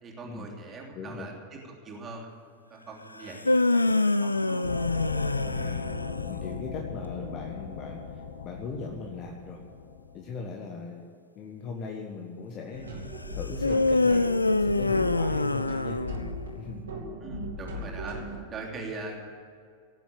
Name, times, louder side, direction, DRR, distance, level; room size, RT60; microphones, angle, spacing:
voice 1, 0.0-4.6 17.2-19.5, right 3 dB, 25° right, -1 dB, 3.1 m, -42 dB
voice 2, 0.9-1.3 5.4-6.0 6.3-9.6 10.1-11.0 11.3-16.0 16.5-16.8, left 4 dB, 35° left, 1 dB, 1.5 m, -39 dB
sound 1, 3.2-6.4 13.6-16.5, left 2 dB, 85° left, 0.4 m, -25 dB
sound 2, 4.6-10.2, left 6 dB, 65° left, 1.6 m, -37 dB
sound 3, 12.7-18.4, equal, 70° right, 3.0 m, -38 dB
18.0 x 7.5 x 8.6 m, 2.3 s
figure-of-eight pair, 90°, 0 cm